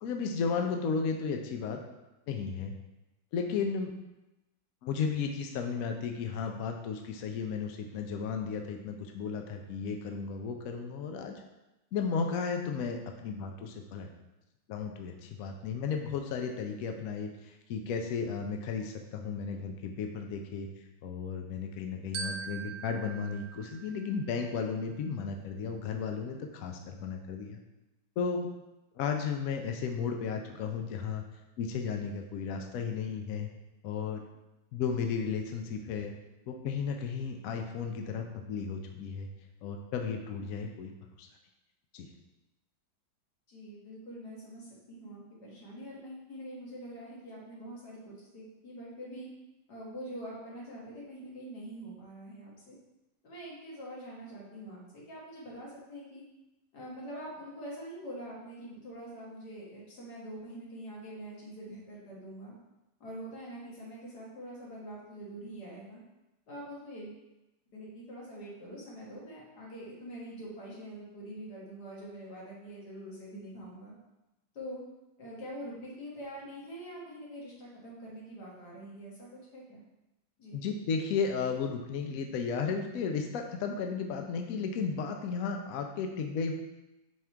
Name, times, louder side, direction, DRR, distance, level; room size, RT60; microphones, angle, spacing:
voice 1, 0.0-1.8 2.3-2.7 3.3-3.9 4.8-11.3 11.9-14.1 14.7-20.7 21.0-27.6 28.2-28.5 29.0-31.2 31.6-33.5 33.8-34.2 34.7-36.1 36.5-39.3 39.6-40.9 41.2-41.3 41.9-42.1 80.5-86.5, left 5 dB, 75° left, 3 dB, 0.8 m, -34 dB
Glockenspiel, 22.1-24.6, right 5 dB, 65° right, 1.0 m, -42 dB
voice 2, 43.5-49.3 49.7-52.8 53.2-56.2 56.7-62.5 63.0-66.0 66.5-67.2 67.7-73.9 74.5-74.8 75.2-79.8 80.4-80.6, right 1 dB, 55° left, -4 dB, 2.1 m, -44 dB
6.0 x 3.6 x 4.5 m, 0.98 s
omnidirectional pair, 2.1 m